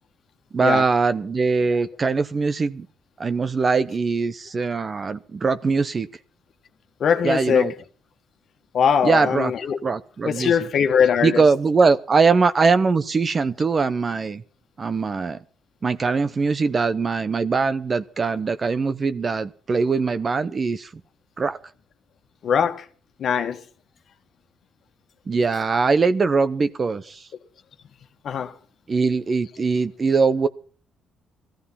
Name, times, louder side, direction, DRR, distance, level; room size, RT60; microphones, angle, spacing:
voice 1, 0.5-2.9 3.2-6.1 7.2-7.7 9.0-9.5 9.8-10.5 11.2-14.4 14.8-15.4 15.8-20.9 21.4-21.6 25.3-27.3 28.9-30.5, right 4 dB, 35° right, 0.7 m, -21 dB
voice 2, 7.0-7.7 8.7-9.8 10.2-11.4 22.4-22.8 23.2-23.6 28.2-28.5, left 7 dB, 60° left, 1.5 m, -21 dB
17.5 x 14.5 x 5.6 m
cardioid pair, 90°, 0 cm